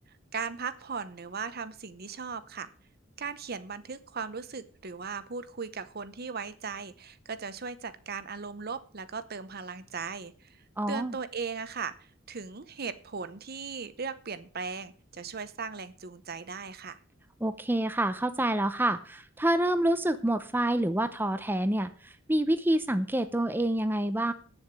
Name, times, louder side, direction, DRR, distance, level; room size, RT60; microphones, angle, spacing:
voice 1, 0.3-2.7 3.2-17.0, right 5 dB, 50° right, 13 dB, 0.9 m, -38 dB
voice 2, 10.8-11.1 17.4-24.3, right 1 dB, 10° right, 9 dB, 0.8 m, -27 dB
8.8 x 7.2 x 8.9 m, 0.41 s
head